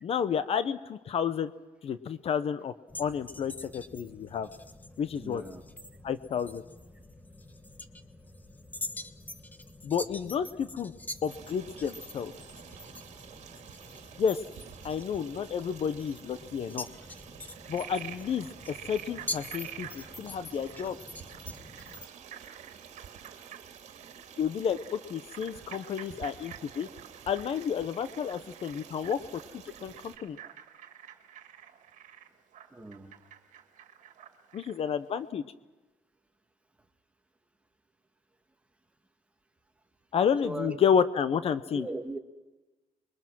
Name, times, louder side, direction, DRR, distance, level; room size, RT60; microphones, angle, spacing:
voice 1, 0.0-1.5 1.8-2.7 3.0-4.5 5.0-5.4 6.0-6.6 9.8-10.9 11.2-12.3 14.2-14.4 14.8-16.9 17.7-21.0 24.4-26.9 27.3-29.2 29.5-30.4 34.5-35.4 40.1-41.9, left 7 dB, 50° left, 13 dB, 0.8 m, -30 dB
sound 1, 2.9-22.1, left 2 dB, 15° left, 1.2 m, -45 dB
voice 2, 5.1-5.6 32.7-33.2 40.4-40.8 41.7-42.2, right 2 dB, 10° right, 5 dB, 1.7 m, -38 dB
Stream, 11.3-30.2, right 8 dB, 60° right, 2.3 m, -50 dB
Frog, 17.4-34.9, right 10 dB, 75° right, 1.9 m, -49 dB
27.5 x 22.5 x 6.2 m, 1.1 s
cardioid pair, 150°, 13 cm